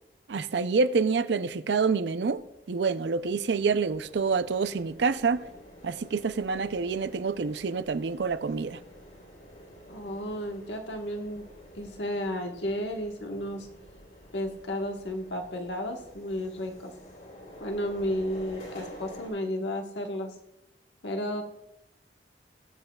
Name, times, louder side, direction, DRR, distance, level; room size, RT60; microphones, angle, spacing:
voice 1, 0.3-2.4 2.7-5.5 5.8-8.8, right 5 dB, 75° right, 0.5 m, -27 dB
sound 1, 2.1-19.3, equal, 55° left, 3.7 m, -49 dB
voice 2, 9.9-11.5 11.7-13.7 14.3-16.9 17.6-20.3 21.0-21.4, equal, 85° left, 1.4 m, -33 dB
20.5 x 7.8 x 2.3 m
head